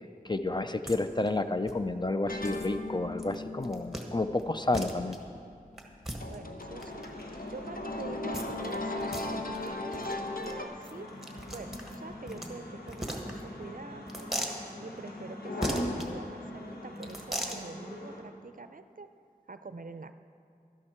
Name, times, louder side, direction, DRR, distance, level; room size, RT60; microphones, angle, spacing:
voice 1, 0.2-5.2, left 2 dB, 30° left, 9 dB, 0.5 m, -30 dB
sound 1, 0.9-1.0 1.2-1.3 1.7-1.8 2.4-2.7 3.2-3.4 3.6-4.1 4.4-4.5 4.7-5.2 5.8-7.1 8.3-8.7 9.0-9.2 9.5-9.7 9.9-10.1 10.4-10.5 10.8-12.5 12.9-13.6 14.1-14.6 15.6-16.1 17.0-17.6, right 1 dB, ahead, 1.4 m, -37 dB
sound 2, 2.3-10.6, left 2 dB, 65° left, 0.9 m, -38 dB
voice 2, 6.3-7.1 7.5-11.1 11.5-14.4 14.8-19.1 19.5-20.1, right 3 dB, 60° right, 10 dB, 0.5 m, -45 dB
sound 3, 6.6-18.2, left 1 dB, 80° left, 1.4 m, -42 dB
12.0 x 11.0 x 4.4 m, 2.5 s
wide cardioid pair, 40°, 16 cm